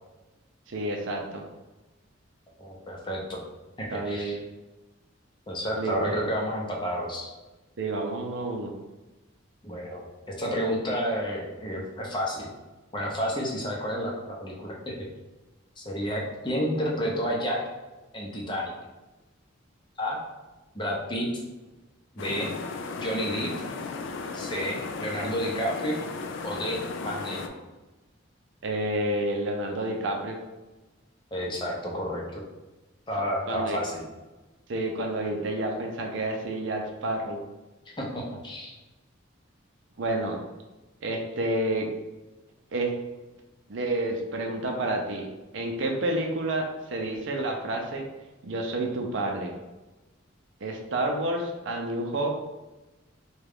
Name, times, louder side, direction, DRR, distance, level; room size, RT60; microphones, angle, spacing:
voice 1, 0.7-1.4 3.9-4.4 5.8-6.2 7.8-8.7 28.6-30.4 33.5-33.8 34.7-37.4 40.0-40.4 41.0-41.9 42.7-42.9 43.7-45.3 45.5-48.0 48.4-49.5 50.6-52.3, right 1 dB, 65° right, 1 dB, 0.5 m, -29 dB
voice 2, 2.6-3.4 3.8-4.4 5.5-7.3 9.6-10.0 10.4-12.5 12.9-15.0 15.8-17.6 18.1-18.7 20.0-20.2 20.7-21.3 22.1-22.5 23.0-23.5 24.3-26.0 26.4-27.5 31.3-32.4 33.1-34.0 37.9-38.8, equal, 25° left, -2 dB, 0.6 m, -30 dB
sound 1, 22.2-27.5, left 4 dB, 65° left, 0.3 m, -35 dB
3.6 x 2.3 x 3.5 m, 1.1 s
head